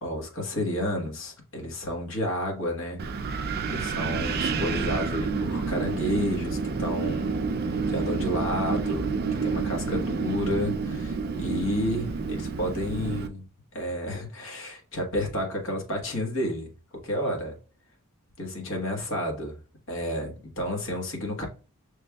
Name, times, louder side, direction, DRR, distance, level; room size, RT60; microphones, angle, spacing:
voice 1, 0.0-3.0 3.7-7.4 7.9-9.1 9.4-13.4 13.7-16.7 17.0-17.6 18.4-19.6 19.9-21.5, left 1 dB, 60° left, 1.3 m, -31 dB
Wind, 3.0-13.3, right 4 dB, 45° right, 0.4 m, -29 dB
6.0 x 3.3 x 2.3 m
head